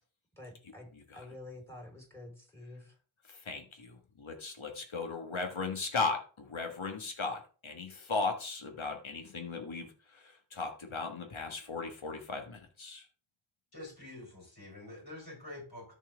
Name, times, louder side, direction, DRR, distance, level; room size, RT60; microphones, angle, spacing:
voice 1, 0.4-0.9 1.1-2.9, left 2 dB, 5° left, 1 dB, 3.8 m, -48 dB
voice 2, 3.4-9.9 10.2-13.0, left 4 dB, 80° left, 5 dB, 1.5 m, -37 dB
voice 3, 13.7-15.9, left 1 dB, 50° left, -1 dB, 4.4 m, -47 dB
13.0 x 4.5 x 3.4 m, 0.37 s
wide cardioid pair, 40°, 47 cm